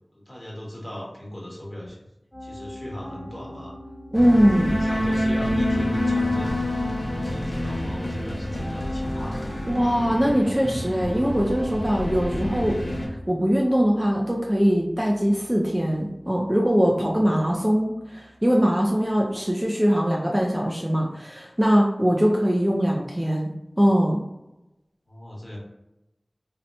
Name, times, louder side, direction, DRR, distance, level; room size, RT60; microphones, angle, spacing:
voice 1, 0.1-2.0 2.4-3.8 4.7-6.6 7.1-9.4 25.1-25.6, left 1 dB, 30° left, -3 dB, 1.2 m, -38 dB
Piano, 2.3-19.4, left 1 dB, 10° left, 1.1 m, -44 dB
sound 1, 4.1-13.1, left 1 dB, 70° left, 0.6 m, -27 dB
voice 2, 4.1-4.8 9.7-23.5 23.8-24.2, equal, 20° right, -1 dB, 0.5 m, -22 dB
2.8 x 2.1 x 4.1 m, 0.91 s
wide cardioid pair, 40°, 0 cm